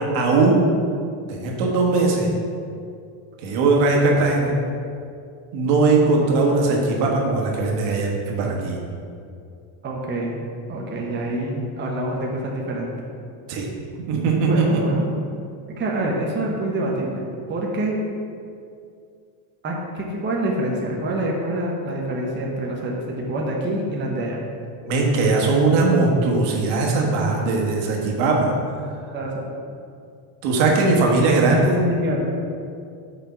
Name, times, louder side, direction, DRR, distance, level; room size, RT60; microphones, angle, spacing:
voice 1, 0.1-0.7 1.3-2.3 3.4-4.5 5.5-8.8 13.5-13.7 14.1-14.8 24.9-28.5 30.4-31.7, right 3 dB, 80° right, -1 dB, 1.6 m, -19 dB
voice 2, 9.8-10.4 10.7-12.9 14.4-15.0 15.8-18.1 19.6-24.4 29.1-29.5 31.3-32.3, right 1 dB, 20° right, -2 dB, 0.9 m, -26 dB
6.7 x 4.5 x 5.6 m, 2.4 s
cardioid pair, 155°, 48 cm